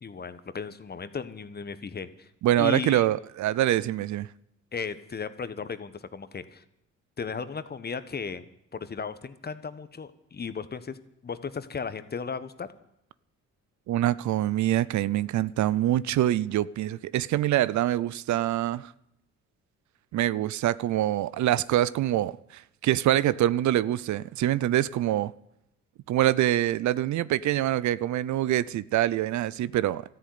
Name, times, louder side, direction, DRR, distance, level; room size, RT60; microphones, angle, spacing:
voice 1, 0.0-2.3 2.6-3.1 4.7-6.6 7.2-8.4 8.7-11.0 11.2-12.7, left 5 dB, 35° left, 1.1 m, -35 dB
voice 2, 2.4-4.3 13.9-18.9 20.1-25.3 26.1-30.0, right 13 dB, 70° right, 0.6 m, -25 dB
13.5 x 10.5 x 9.5 m
cardioid pair, 90°, 30 cm